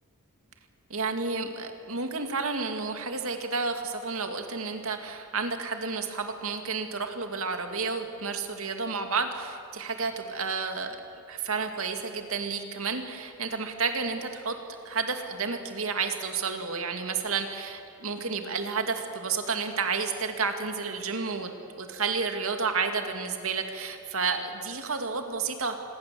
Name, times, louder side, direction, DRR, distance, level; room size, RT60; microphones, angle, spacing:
voice 1, 0.9-11.0 11.3-14.6 14.8-25.7, right 4 dB, 70° right, 5 dB, 2.4 m, -31 dB
26.0 x 21.5 x 7.7 m, 2.6 s
head